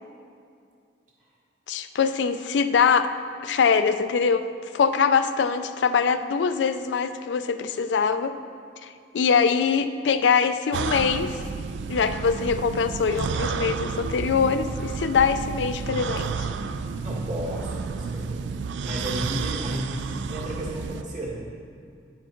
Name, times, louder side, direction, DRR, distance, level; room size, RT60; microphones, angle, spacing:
voice 1, 1.7-3.1 3.4-4.5 4.7-8.4 8.8-11.4 11.9-16.5, left 6 dB, 90° left, 11 dB, 0.4 m, -23 dB
sound 1, 10.7-21.0, right 5 dB, 85° right, 0.3 m, -31 dB
voice 2, 17.0-18.5 18.8-21.4, equal, 45° right, -4 dB, 1.8 m, -33 dB
9.8 x 4.7 x 4.4 m, 2.3 s
head